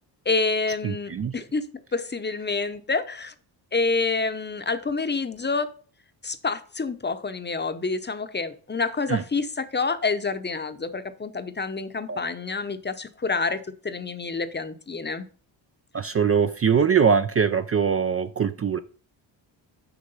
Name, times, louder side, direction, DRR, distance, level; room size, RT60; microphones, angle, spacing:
voice 1, 0.2-3.3 3.7-5.7 6.2-15.3, left 4 dB, 20° left, 0.8 m, -28 dB
voice 2, 0.8-1.3 9.1-9.2 12.1-12.2 15.9-18.8, right 6 dB, 30° right, 0.5 m, -22 dB
6.9 x 6.1 x 5.5 m
cardioid pair, 90°, 47 cm